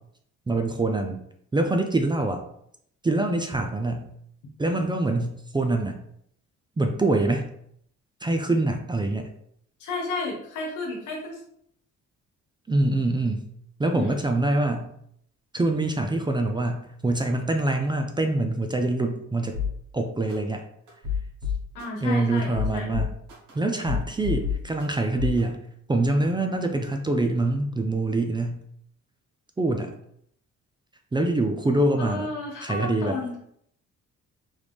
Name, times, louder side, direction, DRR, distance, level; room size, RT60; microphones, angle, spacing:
voice 1, 0.5-1.2 1.5-2.4 3.0-4.1 4.6-6.0 6.8-7.5 8.2-9.3 12.7-13.5 13.8-14.9 15.5-19.6 19.9-20.6 22.0-23.1 23.5-25.6 25.9-28.6 29.6-29.9 31.1-32.3 32.6-33.2, right 2 dB, 15° right, 5 dB, 0.4 m, -25 dB
voice 2, 9.8-11.4 13.9-14.1 21.7-22.9 32.0-33.4, left 3 dB, 85° left, -1 dB, 1.1 m, -32 dB
sound 1, 19.5-19.7 20.3-20.4 20.9-21.8 22.4-23.5 23.8-24.8 25.2-25.4, left 7 dB, 75° right, 1.3 m, -28 dB
3.2 x 2.4 x 3.4 m, 0.69 s
cardioid pair, 90°, 30 cm